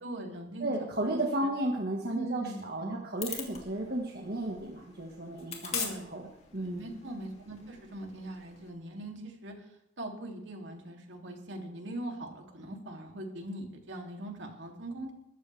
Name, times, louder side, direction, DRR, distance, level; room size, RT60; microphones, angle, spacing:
voice 1, 0.0-0.7 1.0-1.5 2.1-3.0 5.7-9.5 10.0-15.1, right 1 dB, 70° right, 1 dB, 3.1 m, -41 dB
voice 2, 0.6-5.9 6.1-6.3 6.5-6.9, right 1 dB, 55° right, -1 dB, 1.7 m, -33 dB
sound 1, 3.2-8.7, left 6 dB, 35° left, 2.8 m, -42 dB
21.5 x 14.0 x 3.5 m, 0.81 s
head